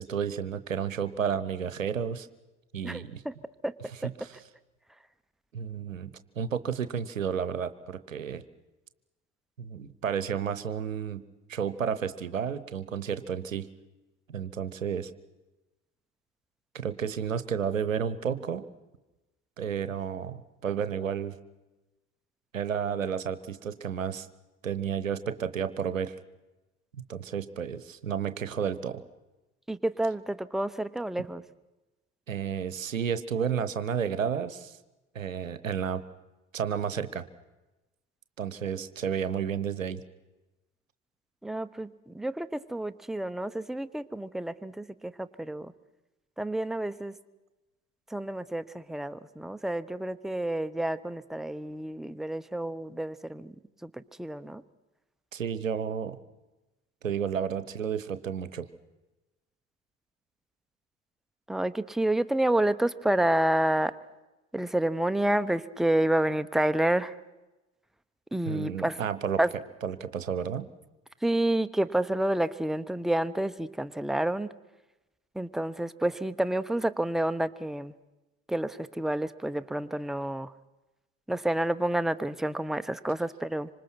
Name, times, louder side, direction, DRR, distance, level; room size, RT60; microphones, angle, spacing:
voice 1, 0.0-2.3 2.7-3.2 4.2-4.4 5.5-6.1 6.4-8.4 9.6-11.2 11.5-13.7 14.3-15.1 16.7-18.7 19.6-21.4 22.5-24.3 24.6-26.1 26.9-29.0 32.3-34.8 35.1-36.0 36.5-37.2 38.4-40.0 55.3-56.2 57.0-58.7 68.5-69.4 69.8-70.7, right 7 dB, 85° right, 13 dB, 0.9 m, -31 dB
voice 2, 2.8-3.3 3.6-3.8 29.7-31.4 41.4-45.7 46.4-47.1 48.1-53.5 53.8-54.6 61.5-63.9 64.5-67.1 68.3-69.0 69.4-69.5 71.2-74.5 75.3-77.9 78.5-80.5 81.3-83.7, right 1 dB, ahead, 11 dB, 1.0 m, -29 dB
26.0 x 25.5 x 6.1 m, 1.1 s
figure-of-eight pair, 50°, 39 cm